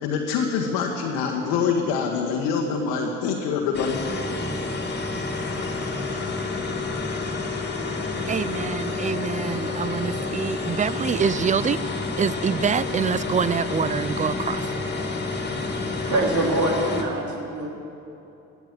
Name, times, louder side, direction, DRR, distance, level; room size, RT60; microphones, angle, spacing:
voice 1, 0.0-4.0, left 6 dB, 70° left, -1 dB, 1.6 m, -25 dB
sound 1, 3.7-17.0, left 3 dB, 25° left, 2.8 m, -29 dB
voice 2, 8.3-11.8 12.2-14.7, right 6 dB, 20° right, 18 dB, 0.5 m, -25 dB
voice 3, 16.1-17.8, right 1 dB, 50° right, 0 dB, 3.6 m, -24 dB
18.0 x 11.0 x 7.5 m, 2.9 s
hypercardioid pair, 50°, 38 cm